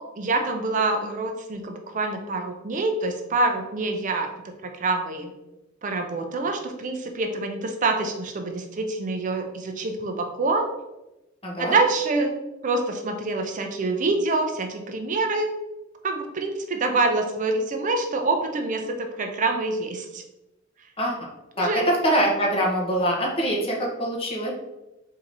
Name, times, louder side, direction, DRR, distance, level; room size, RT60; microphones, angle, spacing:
voice 1, 0.0-4.3 4.6-5.3 5.8-10.7 11.6-12.3 12.6-15.5 16.0-20.2 21.6-21.8, right 3 dB, 40° right, 5 dB, 0.4 m, -26 dB
voice 2, 11.4-11.8 21.0-21.2 21.6-24.5, right 1 dB, 30° left, -2 dB, 1.1 m, -24 dB
3.7 x 2.8 x 4.6 m, 0.97 s
head